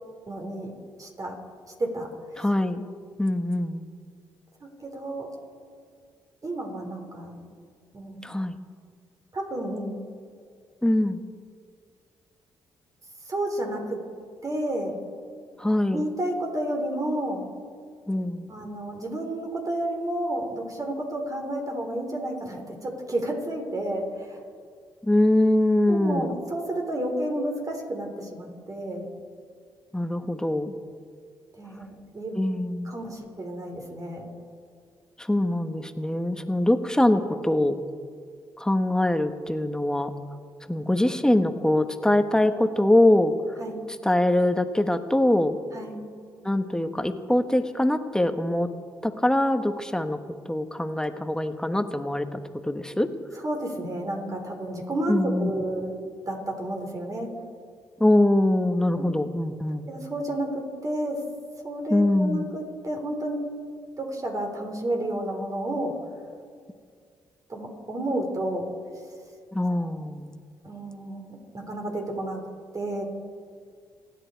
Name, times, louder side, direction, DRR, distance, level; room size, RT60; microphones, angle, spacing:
voice 1, 0.3-0.7 1.0-1.4 1.8-2.1 2.4-2.5 4.6-5.3 6.4-7.4 7.9-8.2 9.3-10.0 13.3-14.0 14.4-15.0 15.9-17.4 18.5-24.4 25.9-29.1 31.6-32.4 32.8-34.3 43.6-43.8 45.7-46.0 53.4-55.9 56.3-57.3 59.0-59.1 59.9-61.2 61.6-63.4 64.0-66.0 67.5-68.7 70.6-72.4 72.7-73.0, right 1 dB, 40° right, 2 dB, 4.1 m, -31 dB
voice 2, 2.4-2.8 3.2-3.8 8.2-8.6 10.8-11.2 15.6-16.0 18.1-18.5 25.0-26.4 29.9-30.7 32.3-32.9 35.2-37.8 38.6-40.1 40.7-43.3 44.0-45.6 46.4-48.7 49.0-50.2 50.4-53.1 55.1-55.5 58.0-59.9 61.9-62.5 69.5-70.4, left 1 dB, 5° left, 8 dB, 1.4 m, -23 dB
29.5 x 10.0 x 4.7 m, 2.1 s
supercardioid pair, 55°, 9 cm